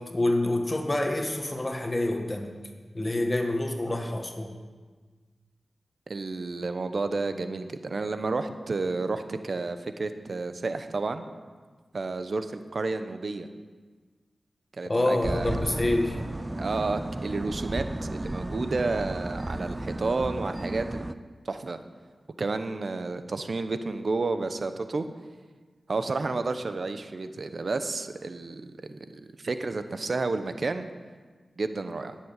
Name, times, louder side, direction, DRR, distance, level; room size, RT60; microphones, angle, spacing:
voice 1, 0.0-2.5 2.9-4.5 14.9-16.2, left 1 dB, 30° left, 3 dB, 1.6 m, -27 dB
voice 2, 6.1-11.3 11.9-13.5 14.8-15.5 16.6-21.0 21.4-21.8 22.4-25.1 25.9-30.9 31.6-32.2, right 3 dB, 65° right, 9 dB, 0.9 m, -31 dB
sound 1, 15.2-21.1, right 1 dB, 25° right, 0.6 m, -33 dB
10.5 x 7.5 x 8.9 m, 1.4 s
cardioid pair, 40°, 0 cm